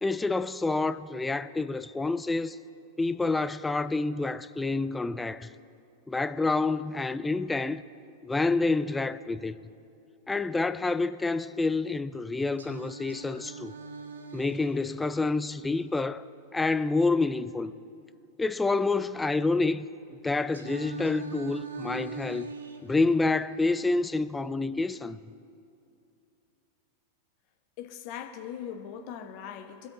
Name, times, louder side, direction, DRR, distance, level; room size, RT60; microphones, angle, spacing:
voice 1, 0.0-2.6 3.0-5.5 6.1-7.8 8.2-9.6 10.3-13.7 14.3-16.3 16.5-17.7 18.4-19.9 20.2-22.5 22.8-25.2, left 3 dB, 10° left, 0.3 m, -28 dB
Singing, 12.6-16.6 20.5-24.6, right 3 dB, 70° right, 0.8 m, -42 dB
voice 2, 27.8-29.9, left 9 dB, 45° left, 1.1 m, -40 dB
23.0 x 8.1 x 3.8 m
figure-of-eight pair, 90°, 0 cm